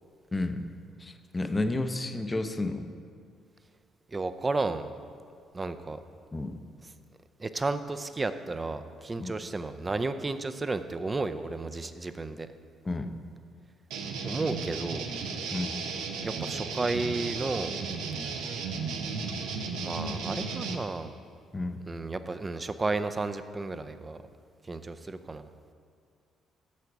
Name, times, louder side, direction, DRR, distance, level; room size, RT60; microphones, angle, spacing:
voice 1, 0.3-0.7 1.0-2.9 6.3-6.6 9.2-9.3 12.9-13.1 15.5-15.8 21.5-21.8, left 2 dB, 25° left, 8 dB, 0.6 m, -31 dB
voice 2, 4.1-4.9 5.5-6.0 7.4-12.5 14.2-15.1 16.2-17.7 19.8-21.1 21.9-24.2 24.7-25.5, right 3 dB, 30° right, 11 dB, 0.5 m, -32 dB
sound 1, 13.9-20.8, right 4 dB, 80° right, 0.7 m, -34 dB
8.4 x 6.7 x 4.8 m, 2.2 s
supercardioid pair, 60°, 0 cm